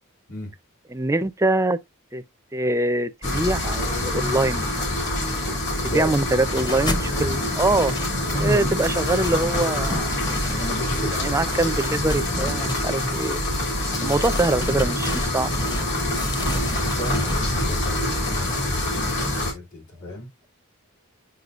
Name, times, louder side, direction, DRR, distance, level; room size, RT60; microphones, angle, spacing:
voice 1, 0.9-1.8 2.1-2.2 2.5-4.7 5.8-7.9 8.4-10.3 11.1-13.4 14.0-15.5, right 2 dB, 15° right, 0.5 m, -24 dB
sound 1, 3.2-19.5, left 1 dB, 55° left, 2.7 m, -25 dB
sound 2, 6.4-7.1 7.4-8.5 8.8-11.0 11.4-13.4 13.9-15.9 16.1-17.4, left 1 dB, 20° left, 0.8 m, -32 dB
voice 2, 8.0-8.7 10.5-11.3 11.6-11.8 13.9-14.2 16.8-20.3, equal, 70° left, 3.1 m, -33 dB
8.1 x 5.6 x 2.5 m
head